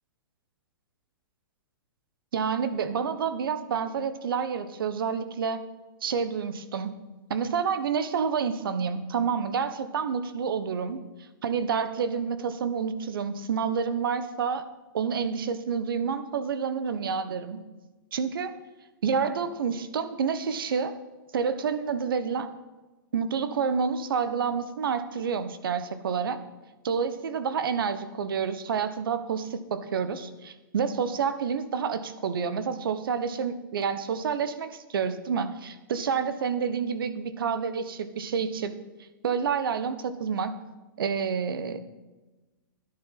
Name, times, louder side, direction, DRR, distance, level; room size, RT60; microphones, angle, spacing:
voice 1, 2.3-5.6 6.0-6.9 7.3-11.0 11.4-14.7 14.9-17.6 18.1-18.5 19.0-21.0 21.3-22.5 23.1-26.4 26.8-38.7 39.2-40.6 41.0-41.8, right 6 dB, 75° right, 11 dB, 1.3 m, -29 dB
13.5 x 10.5 x 5.9 m, 1.2 s
hypercardioid pair, 125°, 12 cm